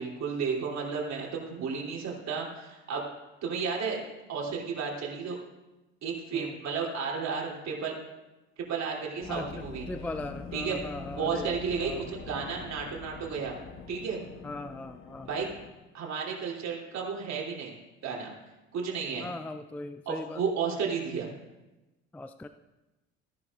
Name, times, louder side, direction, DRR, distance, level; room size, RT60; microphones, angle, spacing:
voice 1, 0.0-3.0 3.4-4.0 4.3-5.4 6.0-7.9 8.7-9.8 10.5-10.8 11.2-13.6 13.9-14.2 15.3-15.5 15.9-17.7 18.0-18.3 18.7-19.3 20.0-21.3, right 5 dB, 45° right, -2 dB, 3.3 m, -32 dB
sound 1, 9.2-15.7, left 5 dB, 35° left, 1.2 m, -44 dB
voice 2, 9.3-12.1 14.4-15.4 19.2-20.4 22.1-22.5, left 2 dB, 5° left, 10 dB, 0.4 m, -39 dB
16.0 x 10.5 x 2.5 m, 1.1 s
hypercardioid pair, 60°, 37 cm